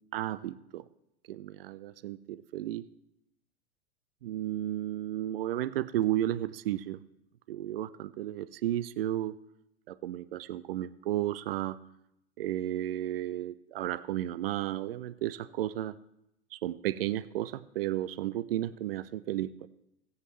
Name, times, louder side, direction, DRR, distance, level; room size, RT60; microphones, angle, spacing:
voice 1, 0.1-0.8 1.3-2.9 4.2-7.0 7.5-9.3 9.9-11.8 12.4-15.9 16.5-19.7, right 13 dB, 60° right, 16 dB, 0.6 m, -33 dB
21.0 x 8.1 x 3.2 m, 0.81 s
figure-of-eight pair, 90°, 32 cm